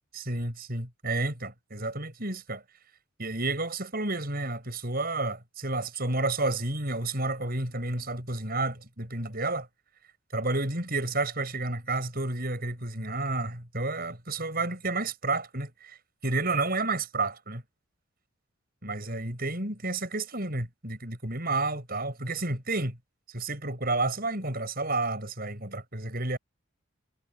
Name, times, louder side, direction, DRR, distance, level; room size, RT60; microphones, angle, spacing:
voice 1, 0.2-2.6 3.2-9.7 10.3-16.0 16.2-17.6 18.8-23.0 23.3-26.4, right 2 dB, 45° right, 7.5 m, -31 dB
head